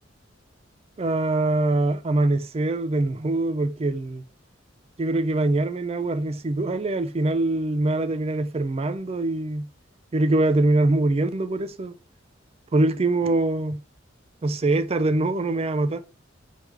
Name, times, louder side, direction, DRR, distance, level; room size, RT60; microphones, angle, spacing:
voice 1, 1.0-4.2 5.0-9.7 10.1-11.9 12.7-13.8 14.4-16.0, right 2 dB, 30° right, 0.4 m, -23 dB
4.6 x 3.6 x 3.2 m
head